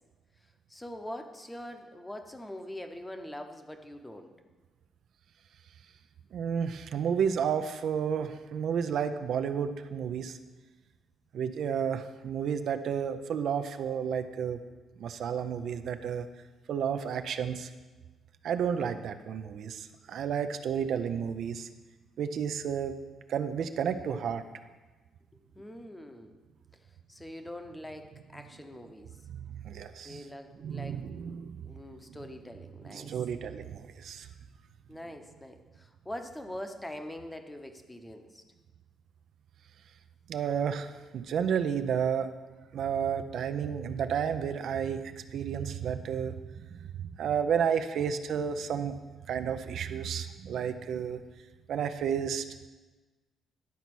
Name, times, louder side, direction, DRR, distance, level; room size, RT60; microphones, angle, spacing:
voice 1, 0.7-4.3 25.5-26.3 27.1-29.1 30.0-31.1 31.6-33.2 34.9-38.4, left 1 dB, 10° left, 6 dB, 0.9 m, -43 dB
voice 2, 6.3-10.4 11.3-14.6 15.0-16.3 16.7-17.7 18.4-21.7 22.2-23.0 23.3-24.4 29.5-30.2 30.6-31.6 32.9-34.3 40.3-42.3 42.7-46.4 46.7-46.8 47.2-49.0 49.3-51.2 51.7-52.4, right 7 dB, 70° right, 9 dB, 0.5 m, -31 dB
10.5 x 4.1 x 6.0 m, 1.2 s
cardioid pair, 90°, 0 cm